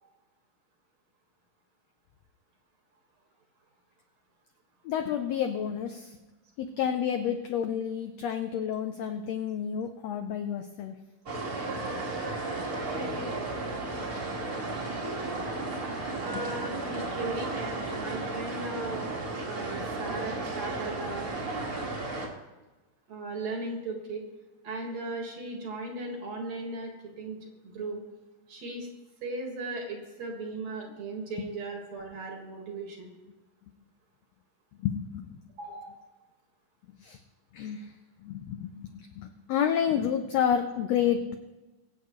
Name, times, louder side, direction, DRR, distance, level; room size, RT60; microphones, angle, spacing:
voice 1, 4.8-6.2 6.6-10.9 34.8-35.4 37.0-37.2 37.5-37.9 38.2-41.4, left 8 dB, 85° left, 6 dB, 1.5 m, -30 dB
sound 1, 11.3-22.3, right 2 dB, 35° right, 1.8 m, -34 dB
voice 2, 16.2-19.1 19.4-21.3 23.1-24.3 24.6-28.0 28.5-28.9 29.2-33.1 35.6-36.0, right 2 dB, 55° right, 1 dB, 2.8 m, -37 dB
23.5 x 8.1 x 3.1 m, 1.1 s
omnidirectional pair, 3.9 m